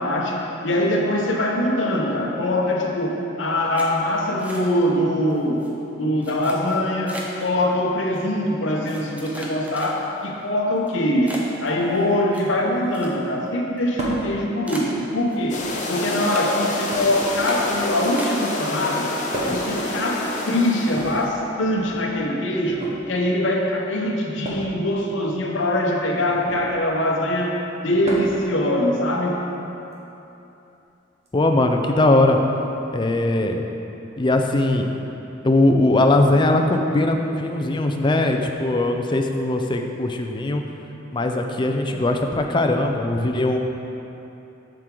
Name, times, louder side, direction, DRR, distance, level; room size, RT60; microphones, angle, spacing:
voice 1, 0.0-5.6 6.0-15.6 15.9-19.1 19.5-27.6 27.8-29.4, left 1 dB, 70° left, -1 dB, 0.9 m, -23 dB
sound 1, 3.7-5.0 5.3-5.7 6.2-7.5 8.1-8.2 8.8-10.3 10.8-10.9 11.3-13.5 13.8-13.9 14.2-14.3 14.6-15.7 16.0-16.5 16.8-17.0 17.5-17.8 18.2-18.8 19.0-19.7 20.0-20.2 20.5-20.7, equal, 10° right, 0.8 m, -38 dB
sound 2, 14.0-14.3 15.4-15.9 16.9-18.0 19.3-19.8 20.9-22.0 22.7-23.0 24.4-24.7 26.3-26.7 28.0-28.5 29.9-30.0 31.3-31.4, equal, 35° right, 1.1 m, -32 dB
sound 3, 15.5-21.3, left 2 dB, 40° left, 0.8 m, -28 dB
voice 2, 31.3-32.4 32.9-33.6 34.2-34.8 35.4-40.6 41.1-43.6, left 2 dB, 25° left, 4 dB, 0.4 m, -20 dB
7.6 x 6.1 x 3.8 m, 3.0 s
head